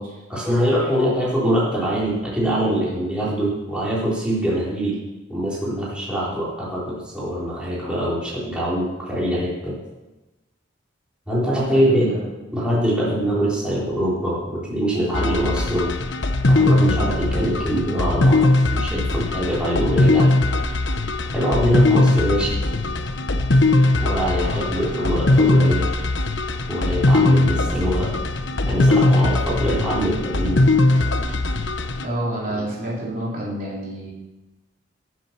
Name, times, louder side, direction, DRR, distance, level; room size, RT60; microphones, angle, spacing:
voice 1, 0.3-5.0 5.3-9.7 11.3-12.1 12.5-15.9 16.5-20.3 21.3-22.5 24.0-25.9 26.7-28.1 28.7-30.6, equal, 5° right, -8 dB, 3.6 m, -23 dB
voice 2, 11.7-12.3 24.4-25.1 32.0-34.1, right 1 dB, 45° right, -5 dB, 3.6 m, -29 dB
sound 1, 15.1-32.1, left 2 dB, 75° left, 0.9 m, -20 dB
18.0 x 7.5 x 5.8 m, 1.1 s
head